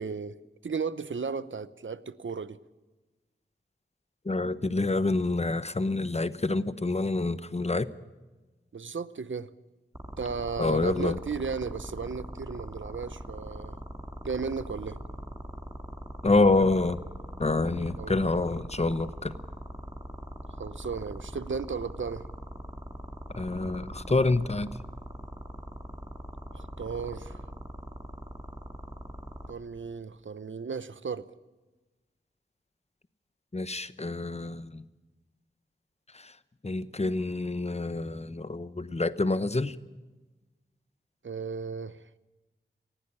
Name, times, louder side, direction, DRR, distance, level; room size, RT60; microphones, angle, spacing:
voice 1, 0.0-2.6 8.7-9.5 10.2-13.8 14.2-15.0 18.0-18.1 20.5-22.3 26.5-27.4 29.5-31.3 41.2-42.1, right 5 dB, 75° right, 15 dB, 0.8 m, -35 dB
voice 2, 4.2-7.9 10.6-11.2 16.2-17.0 17.4-19.3 23.3-24.7 33.5-34.8 36.1-36.4 36.6-39.8, left 3 dB, 35° left, 14 dB, 0.9 m, -27 dB
sound 1, 9.9-29.5, equal, 20° right, 2.4 m, -41 dB
19.0 x 15.5 x 9.9 m, 1.2 s
wide cardioid pair, 55°, 20 cm